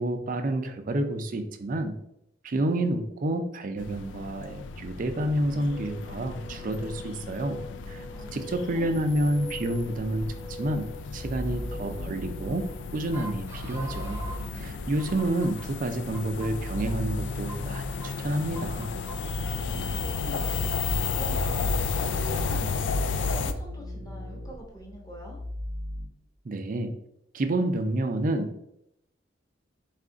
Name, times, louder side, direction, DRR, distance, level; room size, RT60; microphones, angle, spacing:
voice 1, 0.0-1.9 2.4-7.6 7.9-8.1 8.3-10.9 11.1-12.7 12.9-14.2 14.5-18.9 26.4-26.9 27.3-28.6, right 1 dB, 45° right, 7 dB, 0.4 m, -29 dB
sound 1, 3.8-23.5, left 4 dB, 70° left, 0.3 m, -33 dB
sound 2, 5.5-14.5 15.0-15.7 16.1-16.9 17.5-18.1 18.5-19.4, equal, 15° right, 0.7 m, -44 dB
voice 2, 8.1-9.0 19.4-25.4, right 1 dB, 20° left, -1 dB, 0.9 m, -44 dB
sound 3, 10.7-12.6 13.6-15.2 16.1-18.1 18.9-26.1, equal, 70° right, 0.9 m, -38 dB
4.2 x 2.4 x 3.8 m, 0.78 s
head